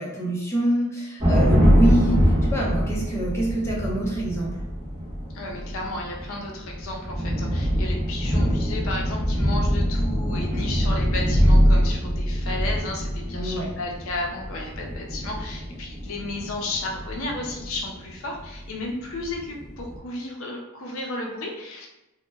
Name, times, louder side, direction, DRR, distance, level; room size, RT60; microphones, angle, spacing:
voice 1, 0.0-4.6 13.3-13.7, right 1 dB, 10° left, -5 dB, 0.5 m, -26 dB
sound 1, 1.2-18.8 19.2-20.0, equal, 10° right, 0.9 m, -23 dB
voice 2, 5.3-21.9, left 2 dB, 65° left, 0 dB, 0.5 m, -33 dB
2.1 x 2.1 x 3.2 m, 0.94 s
head